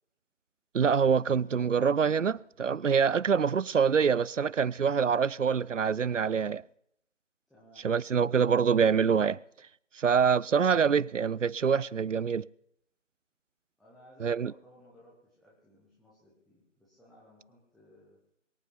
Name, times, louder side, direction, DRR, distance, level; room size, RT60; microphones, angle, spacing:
voice 1, 0.7-6.6 7.8-9.4 10.0-12.4 14.2-14.5, right 6 dB, 75° right, 0.5 m, -25 dB
voice 2, 7.5-8.1 13.8-18.2, equal, ahead, 0.7 m, -58 dB
23.5 x 8.7 x 5.6 m
figure-of-eight pair, 165°, 38 cm